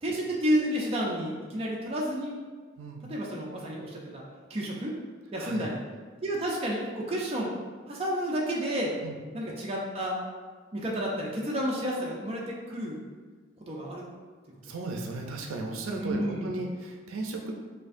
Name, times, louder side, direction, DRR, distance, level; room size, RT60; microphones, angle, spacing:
voice 1, 0.0-2.4 3.1-4.2 4.5-4.9 5.3-5.8 6.2-7.5 7.9-8.9 9.3-10.2 10.7-13.0 13.7-14.1 15.9-16.5, equal, 30° right, -3 dB, 0.4 m, -30 dB
voice 2, 5.4-5.7 9.0-9.2 14.6-17.5, right 2 dB, 85° right, 2 dB, 0.5 m, -35 dB
4.4 x 2.6 x 2.5 m, 1.5 s
head